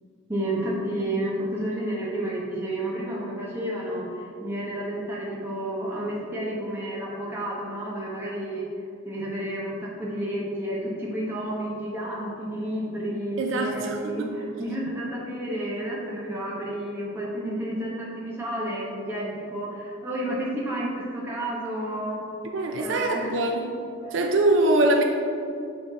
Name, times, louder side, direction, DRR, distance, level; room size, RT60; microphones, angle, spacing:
voice 1, 0.3-8.6 9.0-22.2 22.8-23.4 24.1-24.2, right 1 dB, 10° right, -6 dB, 1.3 m, -31 dB
voice 2, 13.4-14.3 22.5-23.8 24.1-25.0, right 2 dB, 65° right, 3 dB, 0.5 m, -23 dB
8.4 x 3.8 x 4.1 m, 2.6 s
head